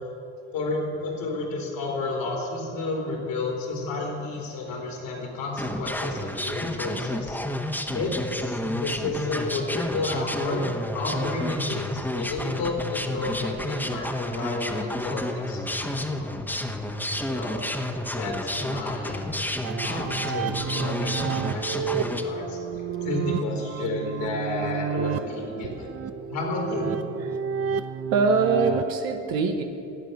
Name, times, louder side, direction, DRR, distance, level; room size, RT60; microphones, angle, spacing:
voice 1, 0.5-7.4 7.9-16.3 17.1-17.6 18.1-19.2 19.8-22.6 23.0-25.9 26.3-26.9, left 3 dB, 70° left, 0 dB, 3.4 m, -31 dB
sound 1, 5.6-22.2, left 1 dB, 5° left, 1.2 m, -30 dB
sound 2, 19.6-28.8, right 7 dB, 45° right, 0.8 m, -31 dB
voice 2, 22.7-23.1 25.0-25.3 25.6-25.8 28.0-29.6, right 4 dB, 75° right, 4 dB, 1.1 m, -25 dB
15.0 x 5.2 x 9.5 m, 2.8 s
supercardioid pair, 65°, 35 cm